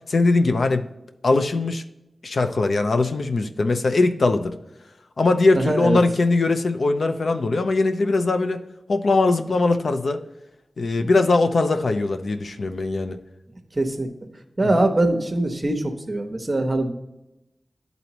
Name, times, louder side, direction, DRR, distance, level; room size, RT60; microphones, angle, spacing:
voice 1, 0.1-0.9 1.2-1.8 2.2-4.6 5.2-8.6 8.9-10.2 10.8-13.2 14.6-14.7, left 3 dB, 70° left, 7 dB, 0.6 m, -21 dB
voice 2, 5.6-6.0 11.0-11.1 13.7-14.1 14.6-16.9, right 2 dB, 35° right, 5 dB, 0.9 m, -22 dB
11.0 x 4.0 x 3.0 m, 0.92 s
wide cardioid pair, 100°, 0 cm